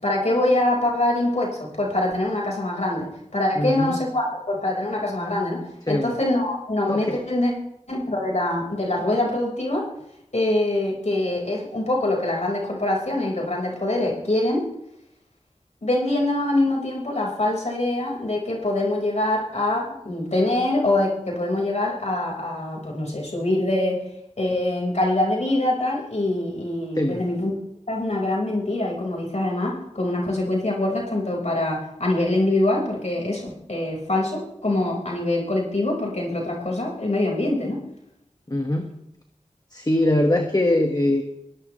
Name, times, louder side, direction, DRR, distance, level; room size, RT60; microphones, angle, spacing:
voice 1, 0.0-7.5 7.9-9.9 10.3-14.7 15.8-24.0 24.4-27.5 27.9-37.8, left 1 dB, 65° left, -2 dB, 5.0 m, -24 dB
voice 2, 3.6-4.0 5.9-6.1 6.9-7.2 27.0-27.2 38.5-38.9 39.7-41.2, left 1 dB, 30° left, 3 dB, 1.8 m, -22 dB
22.0 x 18.0 x 3.3 m, 0.80 s
wide cardioid pair, 55°, 13 cm